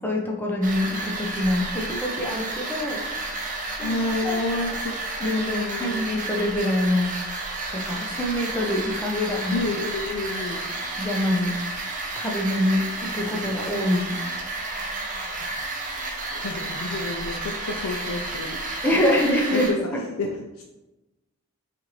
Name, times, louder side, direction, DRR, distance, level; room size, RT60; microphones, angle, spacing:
voice 1, 0.0-3.0 3.8-4.8 5.2-7.1 7.7-9.6 11.0-11.5 12.2-14.2 18.8-19.7, left 1 dB, 10° left, -1 dB, 0.6 m, -25 dB
sound 1, 0.6-19.7, right 2 dB, 35° right, 0.7 m, -31 dB
voice 2, 3.8-6.0 9.5-10.6 16.3-18.6 19.5-19.8 20.2-20.3 20.6-20.7, left 2 dB, 75° left, 1 dB, 0.4 m, -29 dB
6.1 x 2.5 x 3.1 m, 1.0 s
head